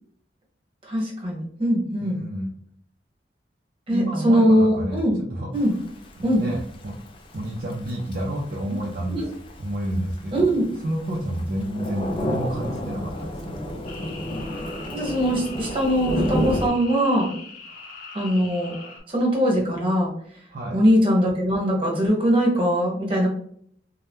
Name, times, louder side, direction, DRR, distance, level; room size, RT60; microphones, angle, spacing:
voice 1, 0.9-2.2 3.9-5.2 5.5-5.7 6.2-6.4 9.1-9.3 10.3-10.6 14.9-17.3 18.1-18.7 19.1-20.1 20.7-23.3, equal, 30° right, -3 dB, 1.1 m, -21 dB
voice 2, 2.0-2.5 3.9-5.0 5.3-5.5 6.2-6.9 7.3-9.2 9.6-10.5 10.8-13.6 17.7-17.8 18.8-18.9 20.5-20.8, right 1 dB, 55° right, -2 dB, 0.5 m, -29 dB
Thunder / Rain, 5.5-16.7, equal, 30° left, 0.4 m, -31 dB
sound 1, 13.8-19.0, left 4 dB, 50° left, 0.8 m, -41 dB
2.8 x 2.1 x 3.5 m, 0.63 s
head